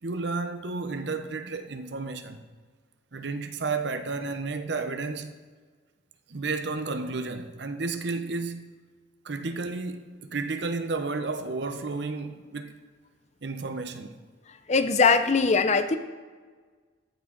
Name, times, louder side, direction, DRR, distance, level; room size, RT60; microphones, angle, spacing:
voice 1, 0.0-2.4 3.1-5.3 6.3-8.6 9.2-12.7 13.4-14.2, right 3 dB, 60° right, 0.7 m, -32 dB
voice 2, 14.7-16.0, left 4 dB, 35° left, 0.5 m, -21 dB
14.0 x 6.0 x 3.8 m
head